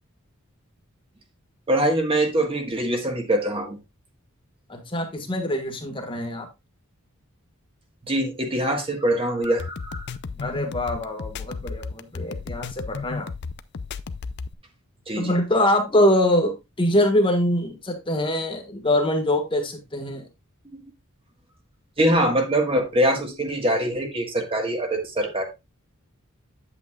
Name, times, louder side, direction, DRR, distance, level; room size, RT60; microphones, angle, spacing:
voice 1, 1.7-3.8 8.1-10.1 15.1-15.3 20.7-20.8 22.0-25.4, right 1 dB, 25° right, 1.5 m, -23 dB
voice 2, 4.7-6.5 10.4-13.3 15.1-20.3, left 1 dB, 25° left, 1.5 m, -23 dB
sound 1, 9.4-14.5, left 4 dB, 55° left, 0.5 m, -33 dB
9.2 x 8.1 x 2.3 m
head